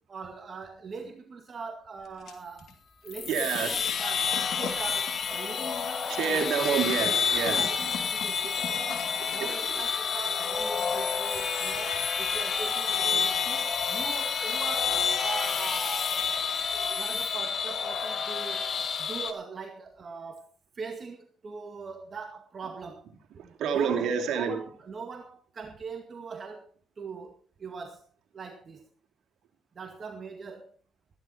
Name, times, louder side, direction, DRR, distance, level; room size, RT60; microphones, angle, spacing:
voice 1, 0.1-2.7 3.0-6.4 7.5-16.1 16.7-18.7 19.0-20.5 20.8-23.1 23.4-28.0 28.3-28.8 29.8-30.8, right 5 dB, 45° right, 2.1 m, -41 dB
sound 1, 2.0-2.7 3.1-9.5, left 7 dB, 75° left, 3.0 m, -43 dB
sound 2, 3.1-19.3, left 6 dB, 50° left, 1.8 m, -29 dB
voice 2, 3.3-3.7 6.1-7.6 9.4-9.5 23.6-24.6, right 7 dB, 80° right, 3.1 m, -28 dB
15.0 x 12.5 x 4.4 m
cardioid pair, 90°, 0 cm